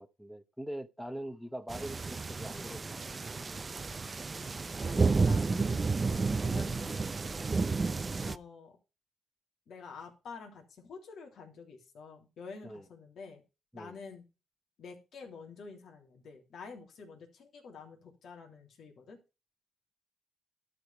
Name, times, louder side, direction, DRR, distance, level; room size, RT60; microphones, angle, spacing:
voice 1, 0.0-3.2 4.0-4.1 12.6-12.8 13.7-13.9, right 1 dB, ahead, 0.9 m, -43 dB
sound 1, 1.7-8.4, right 4 dB, 30° right, 0.6 m, -31 dB
voice 2, 4.8-7.2 8.2-8.7 9.7-13.4 13.7-14.2 14.8-19.2, left 5 dB, 65° left, 3.3 m, -49 dB
12.0 x 5.0 x 5.8 m
cardioid pair, 90°, 0 cm